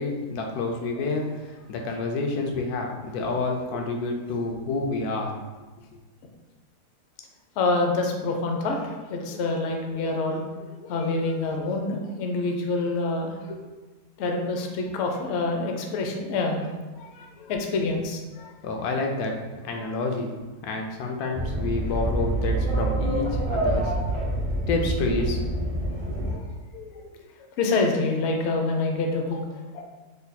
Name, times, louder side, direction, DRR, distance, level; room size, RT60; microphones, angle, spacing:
voice 1, 0.0-5.3 18.6-19.3 19.6-20.3 20.6-23.9 24.7-25.4, left 3 dB, 85° left, 2 dB, 1.1 m, -28 dB
voice 2, 7.6-13.6 14.2-18.5 19.7-19.8 26.3-26.4 26.7-27.2 27.6-29.8, left 3 dB, 65° left, 2 dB, 0.7 m, -27 dB
sound 1, 21.3-26.4, right 1 dB, 30° right, 0.5 m, -26 dB
3.4 x 2.2 x 4.0 m, 1.2 s
omnidirectional pair, 1.6 m